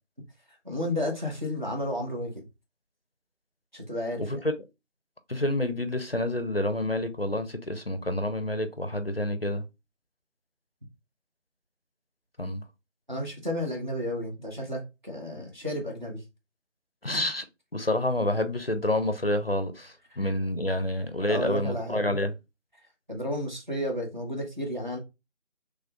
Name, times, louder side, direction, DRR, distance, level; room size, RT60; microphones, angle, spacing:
voice 1, 0.6-2.4 3.7-4.4 13.1-16.2 20.1-20.2 21.3-22.1 23.1-25.0, left 1 dB, 40° right, 1.1 m, -32 dB
voice 2, 5.3-9.6 12.4-12.6 17.0-17.5 17.7-22.3, left 1 dB, 50° left, 0.5 m, -28 dB
3.7 x 3.3 x 2.3 m
figure-of-eight pair, 175°, 37 cm